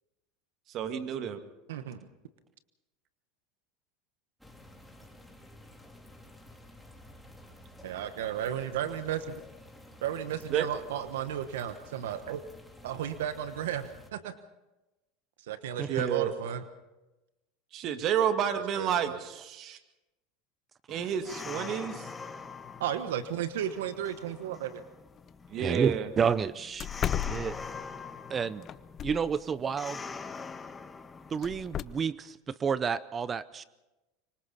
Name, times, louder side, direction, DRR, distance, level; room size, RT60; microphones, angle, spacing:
voice 1, 0.7-1.4 10.5-10.7 15.9-16.3 17.7-19.8 20.9-22.1 25.5-26.1, right 8 dB, 50° right, 7 dB, 2.0 m, -30 dB
voice 2, 1.7-2.0 7.8-9.2 10.0-12.4 12.8-14.3 15.5-16.6 18.7-19.2 22.8-24.8, right 10 dB, 80° right, 11 dB, 1.1 m, -34 dB
sound 1, 4.4-14.1, left 1 dB, ahead, 3.5 m, -52 dB
sound 2, 20.9-32.0, left 4 dB, 20° left, 1.5 m, -44 dB
sound 3, 25.2-25.3 25.7-25.8 26.2-26.3 26.8-28.0 28.6-29.4 31.4-31.8, left 10 dB, 40° left, 0.7 m, -34 dB
voice 3, 25.6-26.9 27.3-27.6 28.3-28.7 29.0-30.0 31.3-33.6, right 6 dB, 30° right, 18 dB, 0.6 m, -30 dB
25.5 x 24.5 x 4.2 m, 1.0 s
hypercardioid pair, 95°, 0 cm